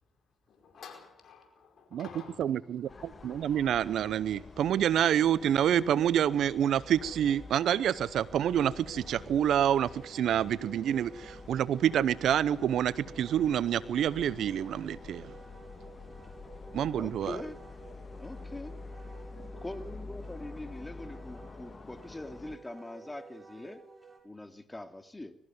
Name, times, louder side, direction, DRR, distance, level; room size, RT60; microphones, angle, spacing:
voice 1, 0.5-2.9, left 5 dB, 65° left, 4.8 m, -50 dB
voice 2, 2.4-15.3 16.7-17.4, right 10 dB, 75° right, 0.8 m, -27 dB
sound 1, 2.9-22.6, left 4 dB, 40° left, 1.5 m, -48 dB
Wind instrument woodwind instrument, 4.7-24.2, right 4 dB, 20° right, 6.4 m, -52 dB
voice 3, 17.0-17.6 18.2-18.7 19.5-23.8 24.2-25.4, left 2 dB, 20° left, 2.5 m, -43 dB
21.0 x 14.5 x 9.5 m
supercardioid pair, 50°, 0 cm